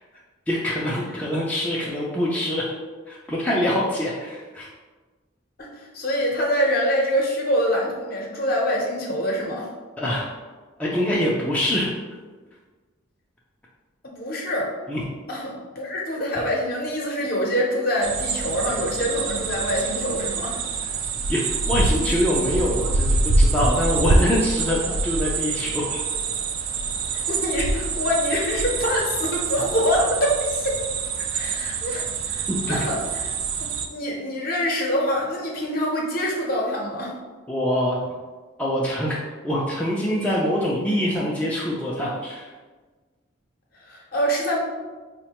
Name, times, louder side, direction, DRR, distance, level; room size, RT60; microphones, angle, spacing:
voice 1, 0.5-2.7 3.1-4.7 10.0-10.3 10.8-11.9 14.9-15.0 21.3-26.0 32.5-32.8 37.5-38.0 38.6-39.2 39.4-42.5, equal, 5° left, -6 dB, 0.3 m, -24 dB
voice 2, 5.6-9.7 14.0-14.7 15.3-20.6 27.1-30.8 31.3-33.2 33.8-37.1 43.8-44.6, equal, 45° left, -2 dB, 0.7 m, -25 dB
sound 1, 18.0-33.9, right 3 dB, 90° right, 0.4 m, -25 dB
4.6 x 2.1 x 2.9 m, 1.3 s
head